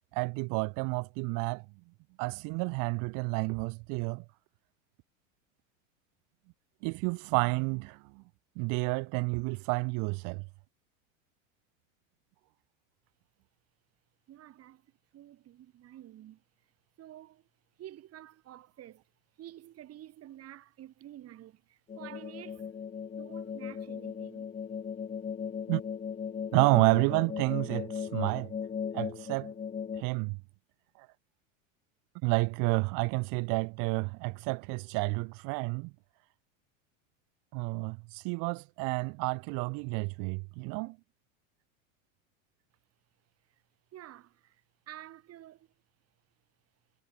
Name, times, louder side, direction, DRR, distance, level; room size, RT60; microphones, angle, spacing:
voice 1, 0.1-1.6 2.2-4.2 6.8-8.2 8.5-10.5 25.7-25.8 26.5-28.5 28.9-29.5 30.0-30.4 31.0-31.1 32.2-35.9 37.5-41.0, right 32 dB, 50° right, 1.3 m, -30 dB
voice 2, 14.3-14.9 15.1-16.4 17.0-17.5 17.8-19.0 19.4-22.7 23.2-24.5 43.9-45.7, right 13 dB, 35° right, 4.9 m, -50 dB
sound 1, 21.9-30.0, left 7 dB, 20° left, 2.0 m, -37 dB
supercardioid pair, 125°, 41 cm